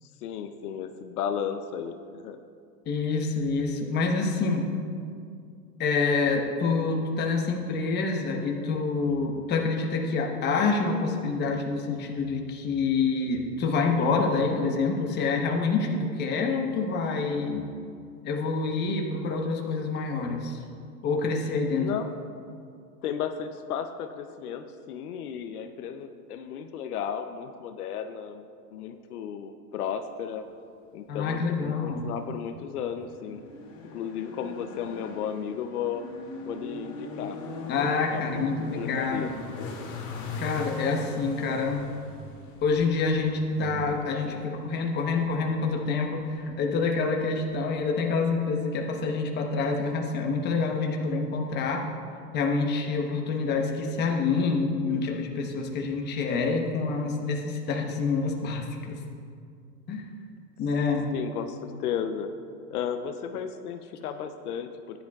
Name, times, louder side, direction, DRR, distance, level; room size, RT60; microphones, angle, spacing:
voice 1, 0.0-2.4 21.7-22.1 23.0-28.4 28.7-30.5 30.9-33.4 33.9-36.0 36.4-37.4 37.7-39.3 61.1-62.3 62.7-65.0, left 8 dB, 70° left, 7 dB, 0.8 m, -34 dB
voice 2, 2.8-4.7 5.8-17.7 18.2-20.6 21.0-21.9 31.1-32.1 37.7-39.3 40.4-41.8 42.6-51.8 52.3-59.0 59.9-60.1 60.6-61.1, left 4 dB, 20° left, 1 dB, 1.1 m, -27 dB
sound 1, 31.1-47.8, left 2 dB, 40° left, 2.5 m, -42 dB
15.0 x 10.5 x 2.4 m, 2.3 s
supercardioid pair, 140°, 47 cm